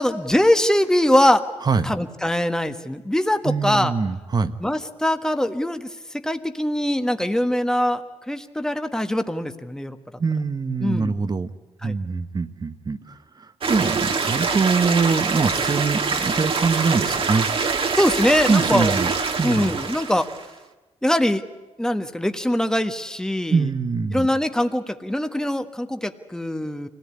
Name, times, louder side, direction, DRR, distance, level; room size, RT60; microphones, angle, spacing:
voice 1, 0.0-1.4 1.8-3.9 4.6-5.9 6.2-10.0 10.8-11.1 11.8-11.9 17.9-18.9 19.4-20.3 21.0-21.4 21.8-23.6 24.1-26.9, left 1 dB, 5° left, 8 dB, 1.4 m, -22 dB
voice 2, 3.4-4.5 10.2-11.5 11.8-17.5 18.5-19.1 19.4-19.8 23.5-24.3, right 4 dB, 40° right, 11 dB, 1.2 m, -23 dB
sound 1, 13.6-20.4, right 5 dB, 55° right, 1.9 m, -24 dB
25.0 x 17.5 x 9.7 m, 1.2 s
cardioid pair, 80°, 11 cm